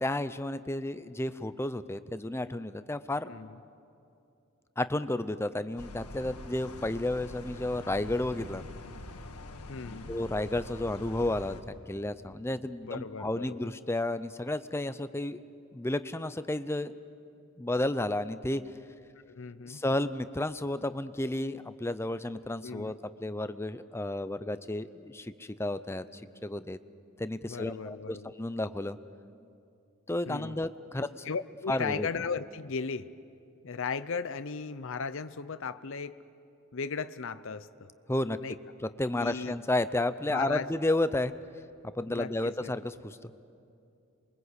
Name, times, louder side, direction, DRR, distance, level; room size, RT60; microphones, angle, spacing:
voice 1, 0.0-3.3 4.8-8.7 9.8-11.6 11.9-15.4 15.7-16.9 17.6-18.6 19.6-26.8 27.2-29.0 30.1-31.3 31.7-32.1 38.1-38.4 39.0-41.3 42.0-43.3, left 1 dB, 10° left, 12 dB, 0.5 m, -32 dB
voice 2, 3.2-3.6 9.7-10.1 12.8-13.7 19.3-19.8 22.6-23.0 27.5-28.3 30.3-30.6 31.0-33.1 33.6-36.2 36.7-37.9 38.4-38.6 39.2-39.5 40.3-40.7 42.0-42.7, left 5 dB, 60° left, 12 dB, 0.6 m, -36 dB
sound 1, 5.8-11.6, left 1 dB, 85° left, 1.7 m, -44 dB
27.5 x 23.0 x 8.1 m, 2.6 s
head